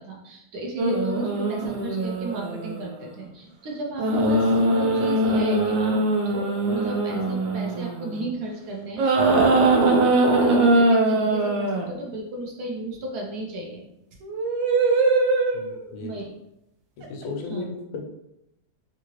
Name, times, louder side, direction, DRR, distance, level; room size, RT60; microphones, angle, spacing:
voice 1, 0.0-6.0 6.3-13.8 16.0-16.3 17.5-17.6, right 2 dB, 70° right, 0 dB, 1.0 m, -34 dB
sound 1, 0.8-2.9 4.0-8.3 9.0-11.9 14.2-15.8 17.0-17.2, right 2 dB, 85° right, 1.3 m, -21 dB
voice 2, 15.5-16.1 17.0-18.0, left 4 dB, 85° left, 1 dB, 1.4 m, -35 dB
3.7 x 2.5 x 2.9 m, 0.84 s
omnidirectional pair, 2.0 m